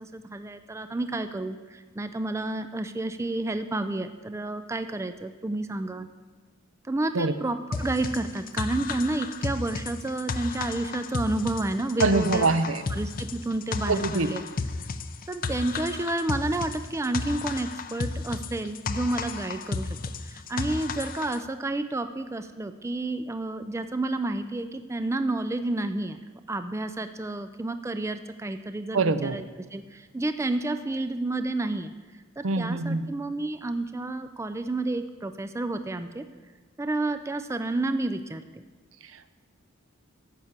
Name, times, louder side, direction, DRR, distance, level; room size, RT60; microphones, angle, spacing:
voice 1, 0.0-6.1 6.8-12.5 12.9-14.4 15.3-20.0 20.2-26.2 26.5-29.4 29.7-31.9 32.4-36.2 36.8-38.4, right 2 dB, 15° right, 9 dB, 0.4 m, -30 dB
sound 1, 7.7-21.4, left 4 dB, 45° left, 0.6 m, -33 dB
voice 2, 12.0-12.8 13.9-14.3 28.9-29.4 32.4-33.0, right 3 dB, 65° right, 12 dB, 0.7 m, -24 dB
12.5 x 7.2 x 8.1 m, 1.4 s
head